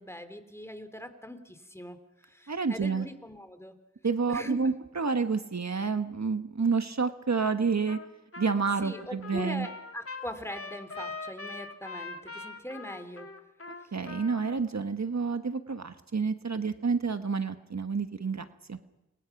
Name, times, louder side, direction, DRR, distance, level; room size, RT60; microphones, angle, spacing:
voice 1, 0.0-2.0 2.2-3.7 4.3-4.6 8.8-13.3, equal, 10° left, 9 dB, 3.2 m, -41 dB
voice 2, 2.5-3.1 4.0-8.0 8.4-9.7 13.7-18.8, right 5 dB, 65° right, 9 dB, 1.3 m, -29 dB
Trumpet, 7.9-8.1 8.3-14.5, left 3 dB, 50° left, 2.5 m, -42 dB
29.0 x 23.5 x 5.9 m, 0.96 s
wide cardioid pair, 40°, 29 cm